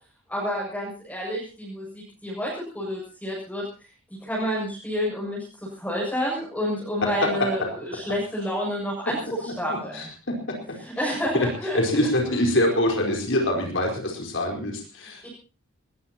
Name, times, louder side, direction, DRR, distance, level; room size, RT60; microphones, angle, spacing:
voice 1, 0.3-3.7 4.2-10.1 10.8-12.1 15.2-15.3, equal, 5° left, -5 dB, 6.9 m, -29 dB
voice 2, 9.7-10.5 11.7-15.3, left 1 dB, 60° left, 1 dB, 4.5 m, -25 dB
20.5 x 20.5 x 2.9 m, 0.35 s
head